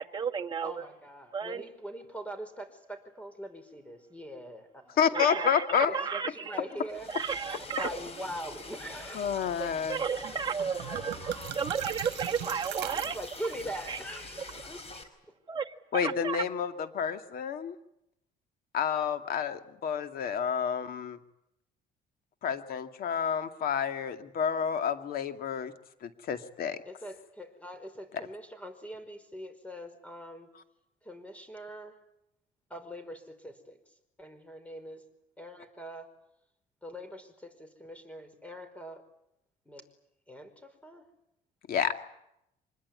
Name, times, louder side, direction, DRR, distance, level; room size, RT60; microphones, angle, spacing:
voice 1, 0.0-0.8 1.3-1.6 5.1-6.3 7.1-7.9 9.6-13.2 13.9-14.0 15.5-16.4, right 6 dB, 25° right, 3 dB, 1.8 m, -33 dB
voice 2, 0.6-5.5 5.9-7.2 7.6-9.7 10.8-11.5 12.9-15.1 26.9-30.5 31.0-32.0 32.7-35.1 35.4-36.2 36.8-39.0 39.7-39.9 40.3-41.1, equal, 10° left, 11 dB, 5.2 m, -43 dB
voice 3, 5.0-5.9 9.1-10.0 15.9-17.8 18.7-21.2 22.4-25.7 26.0-26.8 41.7-41.9, left 7 dB, 60° left, 9 dB, 2.4 m, -29 dB
Liquid, 6.9-15.0, left 3 dB, 35° left, 4.8 m, -46 dB
sound 1, 10.2-10.3 10.6-13.6, right 15 dB, 75° right, 1.3 m, -40 dB
25.5 x 21.0 x 9.7 m, 0.80 s
cardioid pair, 110°, 17 cm